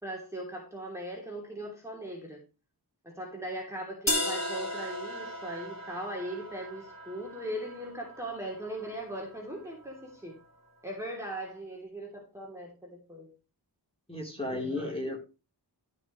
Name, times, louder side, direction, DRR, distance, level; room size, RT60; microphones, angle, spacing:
voice 1, 0.0-2.4 3.0-10.4 10.8-13.3 14.5-15.1, right 1 dB, 5° right, -2 dB, 3.0 m, -39 dB
sound 1, 4.1-10.0, left 1 dB, 35° left, 2.1 m, -36 dB
voice 2, 14.1-15.2, left 2 dB, 15° left, 0 dB, 3.8 m, -34 dB
13.0 x 7.4 x 3.2 m, 0.31 s
wide cardioid pair, 60°, 43 cm